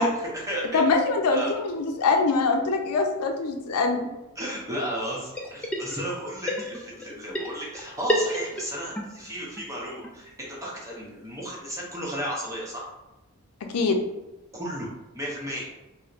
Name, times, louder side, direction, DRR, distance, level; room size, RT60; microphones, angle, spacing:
voice 1, 0.0-0.8 1.3-1.5 4.4-12.9 14.5-14.9 15.1-15.7, equal, 15° right, -4 dB, 0.7 m, -34 dB
voice 2, 0.7-4.1 13.7-14.0, left 3 dB, 90° left, 3 dB, 0.5 m, -23 dB
sound 1, 5.3-6.2 6.5-9.0 9.3-9.4 9.6-9.7 10.0-10.1 10.5-10.6 10.8-10.9 11.3-11.4, equal, 5° left, 0.3 m, -30 dB
4.2 x 2.1 x 2.4 m, 0.99 s
head